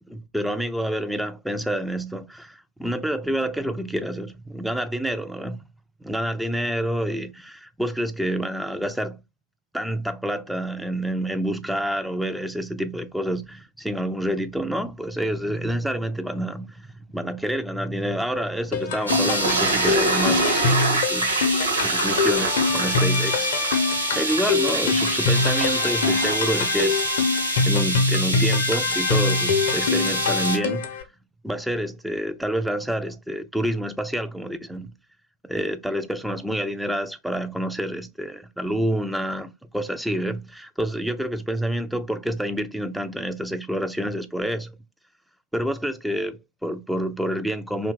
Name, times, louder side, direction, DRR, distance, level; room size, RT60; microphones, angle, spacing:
voice 1, 0.1-5.6 6.0-9.2 9.7-21.4 21.8-23.5 24.2-27.0 27.6-31.0 31.4-34.9 35.4-44.7 45.5-47.9, right 1 dB, ahead, 0.3 m, -28 dB
sound 1, 18.7-31.0, left 4 dB, 55° left, 0.6 m, -24 dB
Toilet flush, 19.1-27.7, right 4 dB, 70° right, 1.0 m, -28 dB
sound 2, 19.1-30.6, right 1 dB, 90° right, 0.6 m, -27 dB
2.7 x 2.2 x 3.3 m
figure-of-eight pair, 90°, 0 cm